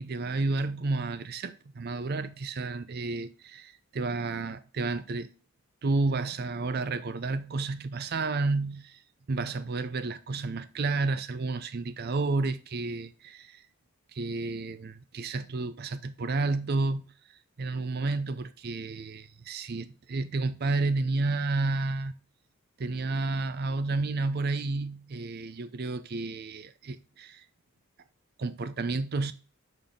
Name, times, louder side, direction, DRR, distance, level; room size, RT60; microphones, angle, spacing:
voice 1, 0.0-5.3 5.8-9.0 9.3-13.6 14.1-17.1 17.6-22.1 22.8-27.4 28.4-29.3, right 3 dB, 45° right, 0.5 m, -31 dB
6.8 x 4.0 x 3.5 m
head